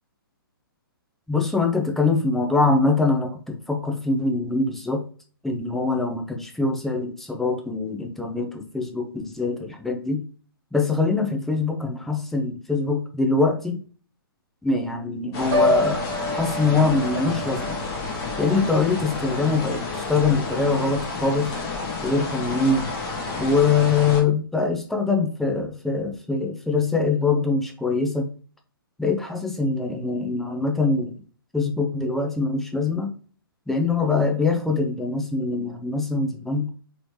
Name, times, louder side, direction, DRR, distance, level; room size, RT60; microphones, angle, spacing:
voice 1, 1.3-5.0 5.4-10.2 10.7-13.8 14.6-17.8 18.4-21.5 22.0-22.9 23.4-28.3 29.0-31.2 31.5-33.2 33.7-36.7, left 3 dB, ahead, 3 dB, 0.5 m, -23 dB
sound 1, 15.3-24.2, left 3 dB, 25° left, 1.0 m, -30 dB
Piano, 15.5-19.5 19.9-20.2, left 1 dB, 25° right, 1.7 m, -28 dB
3.9 x 3.1 x 3.0 m, 0.41 s
figure-of-eight pair, 135°, 12 cm